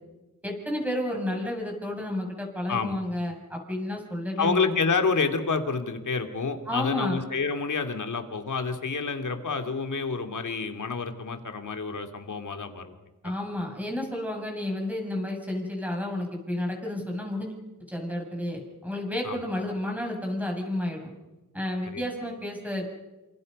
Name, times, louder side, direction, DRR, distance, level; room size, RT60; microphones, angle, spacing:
voice 1, 0.4-4.6 6.7-7.2 13.2-17.6 17.9-21.1 21.5-22.9, left 1 dB, 5° right, 1 dB, 7.4 m, -31 dB
voice 2, 4.4-12.9 13.2-13.3 19.2-19.4 21.9-22.0, left 4 dB, 75° left, 6 dB, 2.7 m, -28 dB
28.5 x 27.5 x 5.5 m, 1.1 s
wide cardioid pair, 100°, 31 cm